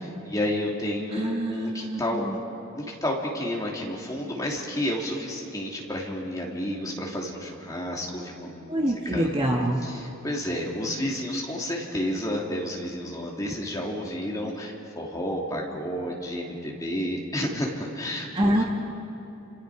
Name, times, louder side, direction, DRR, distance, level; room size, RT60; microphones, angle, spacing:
voice 1, 0.2-2.4 2.7-9.3 9.8-18.6, left 1 dB, 15° left, -2 dB, 2.9 m, -31 dB
voice 2, 1.1-2.3 8.7-9.8 18.3-18.6, equal, 25° right, -1 dB, 1.6 m, -25 dB
30.0 x 27.0 x 5.0 m, 2.9 s
head